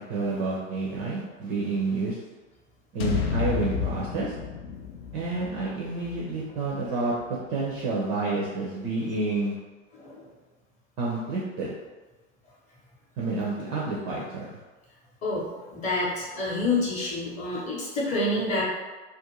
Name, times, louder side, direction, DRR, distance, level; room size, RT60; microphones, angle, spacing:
voice 1, 0.0-2.2 2.9-4.3 5.1-7.1 7.5-9.5 11.0-11.7 13.2-14.6, right 3 dB, 25° right, -5 dB, 0.4 m, -29 dB
sound 1, 3.0-7.2, left 7 dB, 55° left, 0.4 m, -32 dB
voice 2, 9.9-10.2 15.2-18.7, left 2 dB, 20° left, -5 dB, 0.7 m, -28 dB
2.4 x 2.2 x 2.9 m, 1.2 s
figure-of-eight pair, 95°, 39 cm